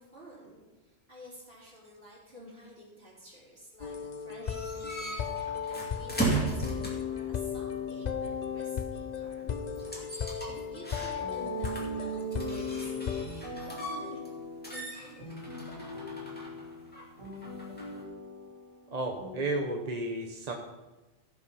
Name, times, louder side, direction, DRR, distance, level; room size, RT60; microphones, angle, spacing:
voice 1, 0.0-9.8 10.5-13.2 13.6-14.2 14.6-15.9, right 1 dB, 50° right, -6 dB, 3.9 m, -50 dB
sound 1, 3.8-13.3, left 7 dB, 45° left, 0.6 m, -35 dB
sound 2, 4.4-7.2 9.8-11.4 11.6-14.4 14.6-18.0, right 2 dB, 10° left, 2.3 m, -36 dB
sound 3, 11.2-19.4, right 2 dB, 90° right, 2.6 m, -41 dB
voice 2, 18.9-20.5, right 2 dB, 35° right, 2 dB, 1.0 m, -32 dB
16.0 x 5.5 x 5.6 m, 1.1 s
omnidirectional pair, 1.2 m